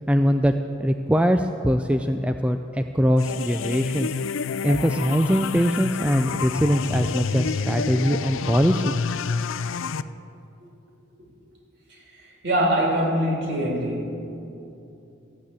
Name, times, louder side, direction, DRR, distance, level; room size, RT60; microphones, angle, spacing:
voice 1, 0.1-0.5 0.8-4.1 4.6-9.0, equal, 5° right, 6 dB, 0.3 m, -22 dB
sound 1, 3.2-10.0, left 5 dB, 75° left, 0.4 m, -28 dB
voice 2, 11.9-14.5, right 1 dB, 55° right, -2 dB, 3.4 m, -24 dB
15.0 x 8.9 x 8.3 m, 2.8 s
head